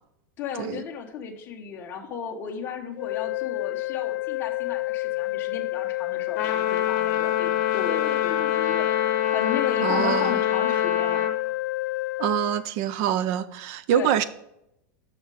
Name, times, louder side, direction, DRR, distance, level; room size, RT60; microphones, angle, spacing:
voice 1, 0.4-8.9 9.3-11.2 13.9-14.1, left 7 dB, 20° left, 1 dB, 0.8 m, -34 dB
sound 1, 2.9-12.6, left 20 dB, 65° left, 0.4 m, -29 dB
Trumpet, 6.4-11.4, left 10 dB, 45° left, 1.0 m, -25 dB
voice 2, 9.8-10.4 12.2-14.2, right 10 dB, 30° right, 15 dB, 0.4 m, -25 dB
6.4 x 5.7 x 4.8 m, 0.80 s
supercardioid pair, 175°, 11 cm